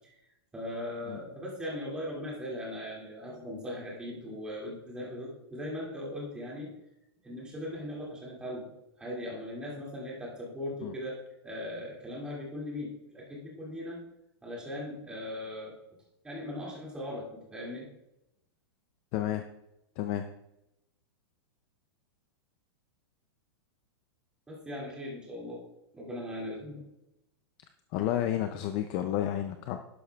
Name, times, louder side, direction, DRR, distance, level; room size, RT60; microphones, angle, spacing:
voice 1, 0.5-6.7 7.2-8.7 9.0-14.0 14.4-15.7 16.2-17.9 24.5-25.6 25.9-26.8, left 1 dB, 5° right, -4 dB, 2.3 m, -39 dB
voice 2, 19.1-19.4 20.0-20.2 27.9-29.8, left 11 dB, 25° left, 8 dB, 0.4 m, -31 dB
11.5 x 10.5 x 2.3 m, 0.87 s
supercardioid pair, 170°, 14 cm